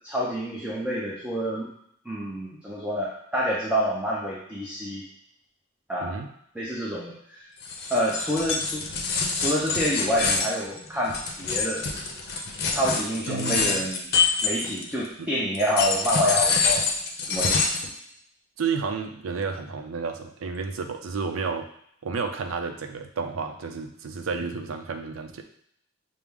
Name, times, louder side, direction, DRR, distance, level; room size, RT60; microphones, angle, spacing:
voice 1, 0.0-1.7 2.1-5.0 5.9-6.2 6.5-7.4 7.9-8.8 9.3-11.8 12.7-14.1 14.4-16.9 17.2-17.6, equal, 5° right, -6 dB, 0.6 m, -27 dB
voice 2, 6.0-6.3 13.3-13.9 15.2-15.3 18.6-21.7 22.0-25.4, right 5 dB, 85° right, 6 dB, 0.5 m, -31 dB
sound 1, 7.6-15.1 15.5-17.9, left 4 dB, 50° left, 0.6 m, -26 dB
5.9 x 2.0 x 3.5 m, 0.71 s
head